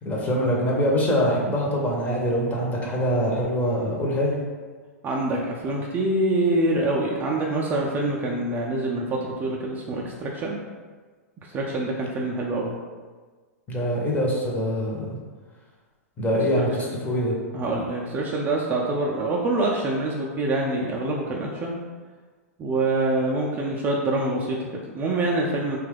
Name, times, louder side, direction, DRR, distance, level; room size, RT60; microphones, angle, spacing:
voice 1, 0.0-4.3 13.7-15.2 16.2-17.3, equal, 20° left, -3 dB, 0.7 m, -24 dB
voice 2, 5.0-10.6 11.5-12.7 16.6-16.7 17.5-21.8 22.6-25.8, right 2 dB, 25° right, -2 dB, 0.4 m, -25 dB
2.8 x 2.3 x 3.3 m, 1.4 s
figure-of-eight pair, 105°, 8 cm